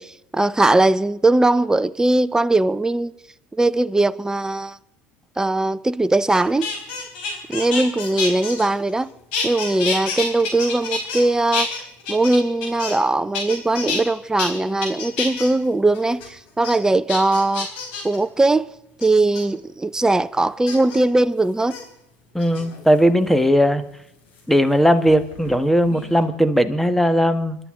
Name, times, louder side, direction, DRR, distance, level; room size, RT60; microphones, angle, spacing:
voice 1, 0.0-3.1 3.5-4.8 5.4-6.7 7.5-9.1 9.4-11.7 12.1-17.7 18.0-18.7 19.0-21.8, right 2 dB, 10° right, 0.8 m, -20 dB
sound 1, 6.3-9.0 9.3-11.2 11.5-13.1 13.3-14.0 14.4-14.5 14.8-15.5 15.9-16.3 16.6-16.7 17.1-18.2 19.0-19.4 20.7-21.0 21.6-21.8 22.4-23.0 24.4-25.6 25.8-26.2, left 4 dB, 85° left, 4.2 m, -28 dB
voice 2, 22.3-23.8 24.5-27.6, equal, 5° left, 1.5 m, -17 dB
26.0 x 12.0 x 3.8 m
supercardioid pair, 85°, 6 cm